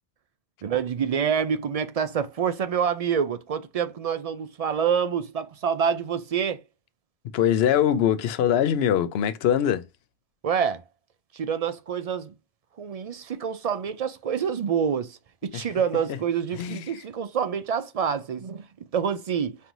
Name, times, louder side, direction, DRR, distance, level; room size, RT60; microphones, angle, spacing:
voice 1, 0.6-6.6 10.4-10.8 11.3-12.3 12.8-18.7 18.9-19.6, right 7 dB, 55° right, 0.4 m, -27 dB
voice 2, 7.3-9.9 15.5-15.6 16.5-17.0, left 10 dB, 75° left, 0.8 m, -23 dB
5.4 x 2.6 x 2.9 m
omnidirectional pair, 1.1 m